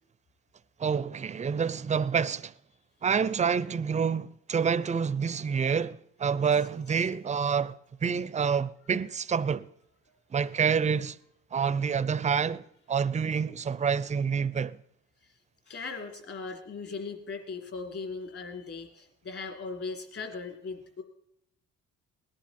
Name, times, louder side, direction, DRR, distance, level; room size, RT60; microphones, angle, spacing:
voice 1, 0.8-2.5 3.0-9.7 10.3-11.2 11.5-14.8, right 6 dB, 25° right, 0.5 m, -28 dB
voice 2, 15.7-21.0, left 4 dB, 50° left, 2.9 m, -39 dB
18.5 x 10.5 x 4.2 m
cardioid pair, 90°, 30 cm